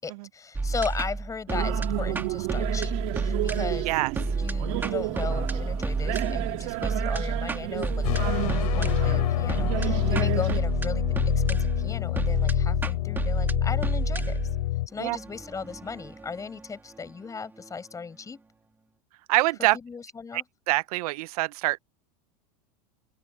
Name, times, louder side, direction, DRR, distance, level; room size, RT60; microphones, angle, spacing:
voice 1, 0.0-3.9 4.3-11.1 11.3-14.4 14.9-18.4 19.8-20.4, left 5 dB, 15° left, 6.3 m, -37 dB
sound 1, 0.5-17.7, right 3 dB, 10° right, 1.7 m, -31 dB
sound 2, 1.5-10.6, right 21 dB, 60° right, 1.6 m, -32 dB
sound 3, 8.0-14.9, left 17 dB, 80° left, 3.1 m, -27 dB
voice 2, 19.3-19.8 20.3-21.8, right 19 dB, 75° right, 0.4 m, -25 dB
open air
supercardioid pair, 135°, 19 cm